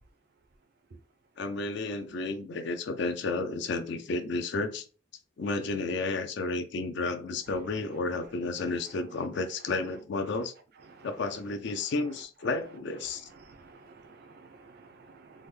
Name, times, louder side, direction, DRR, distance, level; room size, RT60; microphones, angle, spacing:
voice 1, 1.4-4.8 5.4-10.5 11.0-13.3, left 3 dB, 60° left, 0.4 m, -32 dB
voice 2, 13.4-15.5, right 4 dB, 50° right, 0.5 m, -53 dB
3.5 x 2.1 x 3.1 m
head